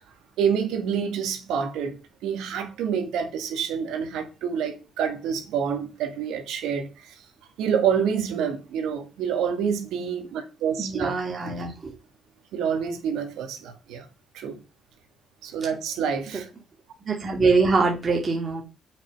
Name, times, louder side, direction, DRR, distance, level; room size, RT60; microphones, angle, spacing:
voice 1, 0.4-2.0 2.2-7.2 7.6-11.1 12.5-14.1 14.3-14.6 15.4-16.5, right 7 dB, 90° right, 2.2 m, -27 dB
voice 2, 10.8-11.9 17.1-18.6, right 4 dB, 35° right, 2.3 m, -23 dB
8.0 x 6.0 x 5.5 m
cardioid pair, 90°, 0 cm